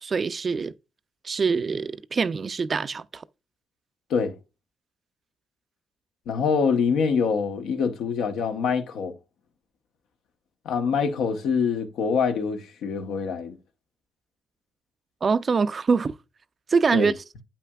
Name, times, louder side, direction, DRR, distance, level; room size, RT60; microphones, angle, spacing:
voice 1, 0.0-0.7 1.2-3.2 15.2-16.1 16.7-17.2, right 5 dB, 40° right, 0.3 m, -24 dB
voice 2, 6.3-9.1 10.6-13.6 16.9-17.1, left 6 dB, 80° left, 0.8 m, -25 dB
8.3 x 5.7 x 2.3 m
cardioid pair, 90°, 0 cm